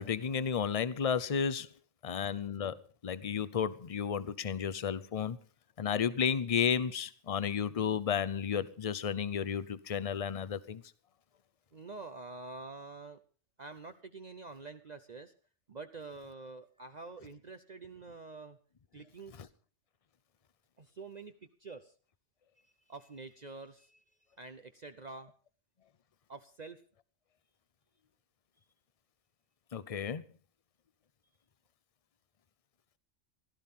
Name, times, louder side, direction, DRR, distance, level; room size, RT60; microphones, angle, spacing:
voice 1, 0.0-1.7 2.0-2.8 3.0-5.4 5.8-10.8 19.4-19.5 29.7-30.2, left 7 dB, 35° left, 0.7 m, -32 dB
voice 2, 11.7-13.2 13.6-15.3 15.7-18.6 18.9-19.5 20.8-21.3 21.6-21.9 22.6-24.0 24.4-25.3 26.3-26.8, right 3 dB, 40° right, 0.8 m, -47 dB
16.5 x 12.5 x 5.5 m
omnidirectional pair, 1.2 m